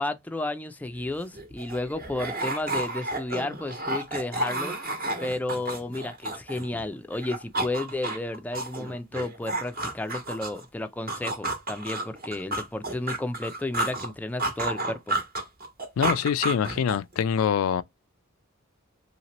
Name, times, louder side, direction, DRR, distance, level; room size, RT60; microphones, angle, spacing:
voice 1, 0.0-4.8 5.2-15.2, left 2 dB, 10° left, 0.3 m, -32 dB
sound 1, 1.0-1.1 1.3-6.8 7.1-10.6 11.1-14.1 14.4-17.1, right 2 dB, 45° right, 1.1 m, -31 dB
voice 2, 16.0-17.8, left 8 dB, 90° left, 0.3 m, -24 dB
2.9 x 2.8 x 2.9 m
head